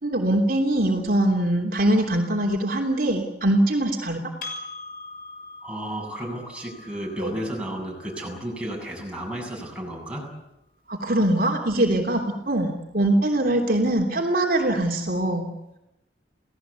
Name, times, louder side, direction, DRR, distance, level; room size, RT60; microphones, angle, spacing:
voice 1, 0.0-4.2 7.2-7.3 10.9-15.5, right 1 dB, 50° right, 1 dB, 3.2 m, -22 dB
Percussion, 4.4-9.2, left 3 dB, 50° left, 6.7 m, -42 dB
voice 2, 5.6-10.3, right 1 dB, 5° right, -1 dB, 7.8 m, -33 dB
30.0 x 18.0 x 8.3 m, 0.89 s
head